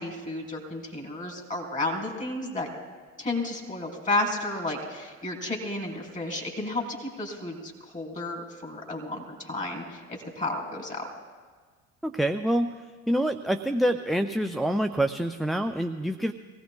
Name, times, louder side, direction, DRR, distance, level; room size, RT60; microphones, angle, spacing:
voice 1, 0.0-2.7 3.2-11.1, left 2 dB, 20° left, 1 dB, 4.2 m, -32 dB
voice 2, 12.0-12.7 13.1-16.3, right 1 dB, ahead, 5 dB, 0.3 m, -26 dB
25.0 x 17.0 x 2.3 m, 1.5 s
hypercardioid pair, 65°, 40 cm